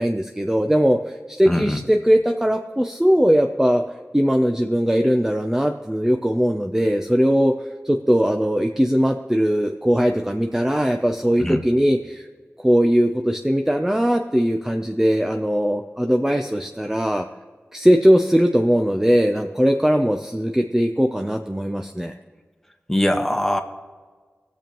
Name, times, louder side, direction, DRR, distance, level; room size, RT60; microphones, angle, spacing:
voice 1, 0.0-3.8 4.1-7.5 7.8-12.3 12.6-17.3 17.7-22.1, equal, 10° right, 4 dB, 0.6 m, -20 dB
voice 2, 1.5-1.8 11.4-11.6 22.9-23.6, left 1 dB, 5° left, 4 dB, 1.3 m, -21 dB
18.0 x 7.0 x 3.0 m, 1.5 s
cardioid pair, 45°, 5 cm